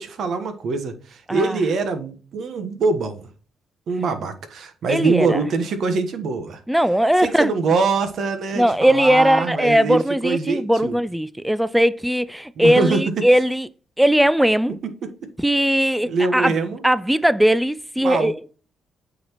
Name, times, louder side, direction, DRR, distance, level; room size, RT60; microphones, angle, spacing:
voice 1, 0.0-3.3 3.9-6.6 7.2-11.0 12.6-13.2 15.0-15.1 16.0-16.8 18.0-18.3, right 4 dB, 65° right, 1.3 m, -24 dB
voice 2, 4.9-5.4 6.7-7.5 8.5-13.7 14.0-14.7 15.4-16.5 16.8-18.3, equal, 5° right, 0.3 m, -19 dB
8.4 x 4.1 x 3.0 m
cardioid pair, 90°, 0 cm